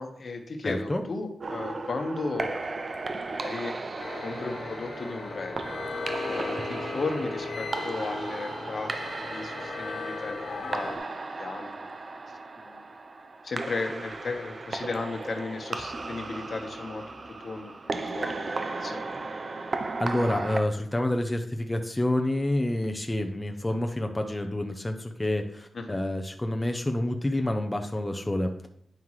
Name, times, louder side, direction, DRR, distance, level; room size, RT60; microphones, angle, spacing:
voice 1, 0.0-3.7 4.2-5.8 6.2-8.9 9.3-11.9 12.6-12.8 13.4-17.0 17.4-19.1 25.7-26.0, left 3 dB, 60° left, 5 dB, 1.1 m, -35 dB
voice 2, 0.6-1.0 20.0-28.7, left 1 dB, 15° left, 5 dB, 0.7 m, -28 dB
sound 1, 1.4-20.6, right 3 dB, 45° right, 0.6 m, -36 dB
sound 2, 4.0-11.0, left 4 dB, 75° left, 1.4 m, -37 dB
9.0 x 5.6 x 3.2 m, 0.71 s
cardioid pair, 70°, 0 cm